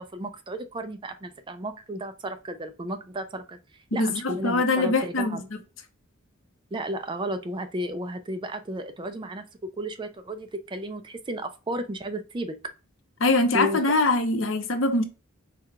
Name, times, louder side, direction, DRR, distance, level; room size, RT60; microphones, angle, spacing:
voice 1, 0.0-3.6 3.9-5.4 6.7-9.4 9.8-12.7 13.5-13.8, right 1 dB, 25° right, 0.4 m, -33 dB
voice 2, 3.9-5.6 13.2-15.0, left 2 dB, 65° left, 0.7 m, -23 dB
4.7 x 2.3 x 3.4 m
head